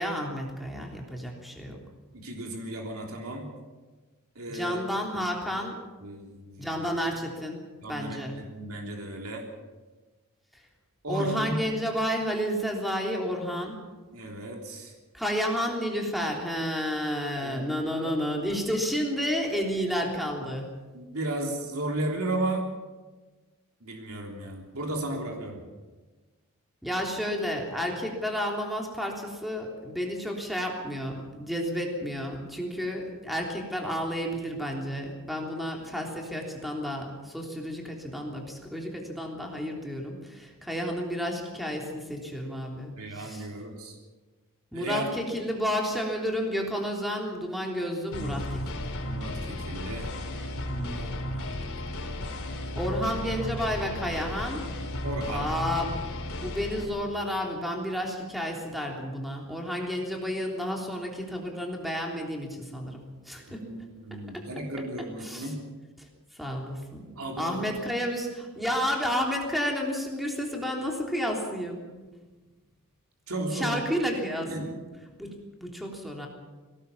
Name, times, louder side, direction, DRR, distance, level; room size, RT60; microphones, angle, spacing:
voice 1, 0.0-1.8 4.5-5.8 6.6-8.4 11.1-13.8 15.1-20.7 26.8-43.5 44.7-48.9 50.6-51.5 52.7-54.7 55.3-55.9 56.4-63.7 64.1-64.4 65.2-65.5 66.0-66.1 66.3-67.1 67.4-71.9 73.5-74.8 75.2-76.3, equal, ahead, 0 dB, 3.4 m, -31 dB
voice 2, 2.1-3.5 4.4-4.8 5.1-5.3 6.0-6.7 7.8-8.2 8.5-9.4 11.0-11.6 14.1-14.9 17.4-17.7 20.9-22.7 23.8-25.6 43.0-44.0 44.7-45.0 49.0-50.1 55.0-55.5 63.5-65.6 67.2-67.7 73.3-73.8 74.5-74.7, right 1 dB, 70° right, 1 dB, 3.5 m, -34 dB
sound 1, 48.1-56.8, left 1 dB, 70° left, 4.0 m, -34 dB
22.0 x 18.0 x 7.1 m, 1.3 s
head